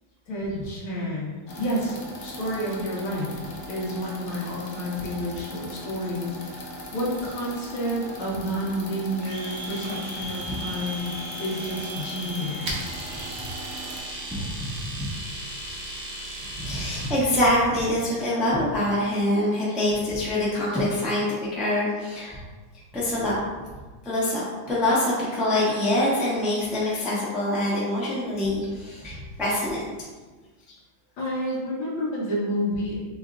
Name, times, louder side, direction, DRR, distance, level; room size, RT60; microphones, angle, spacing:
voice 1, 0.3-2.0 2.2-12.9 31.2-32.9, equal, 85° left, -5 dB, 2.0 m, -30 dB
sound 1, 1.5-14.0, equal, 65° left, 0.7 m, -40 dB
Domestic sounds home sounds, 9.2-17.2, right 1 dB, 90° right, 0.5 m, -36 dB
voice 2, 14.0-14.5 15.0-15.1 16.6-22.4 22.9-23.4 24.0-29.8 30.7-30.8, left 1 dB, ahead, -8 dB, 0.6 m, -25 dB
5.3 x 2.4 x 3.5 m, 1.3 s
omnidirectional pair, 2.2 m